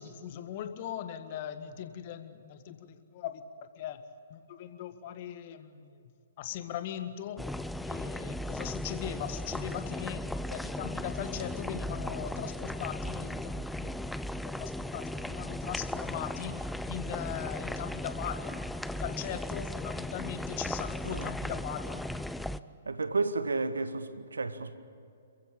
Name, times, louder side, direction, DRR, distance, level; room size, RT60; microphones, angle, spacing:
voice 1, 0.0-4.0 4.3-6.0 6.4-7.4 7.8-14.0 14.3-18.6 19.0-22.1, left 10 dB, 40° left, 1.7 m, -40 dB
sound 1, 7.4-22.6, left 1 dB, 5° left, 0.5 m, -36 dB
voice 2, 22.8-24.8, right 3 dB, 75° right, 1.5 m, -32 dB
29.0 x 15.5 x 8.5 m
figure-of-eight pair, 120°, 0 cm